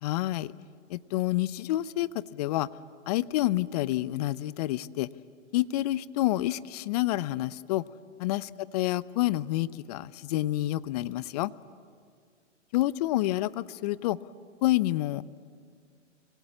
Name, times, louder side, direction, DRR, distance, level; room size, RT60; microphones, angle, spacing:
voice 1, 0.0-0.5 0.9-2.7 3.1-5.1 5.5-7.8 8.2-11.5 12.7-14.2 14.6-15.2, left 16 dB, 35° left, 18 dB, 0.6 m, -28 dB
25.5 x 25.0 x 8.7 m, 2.1 s
hypercardioid pair, 125°, 37 cm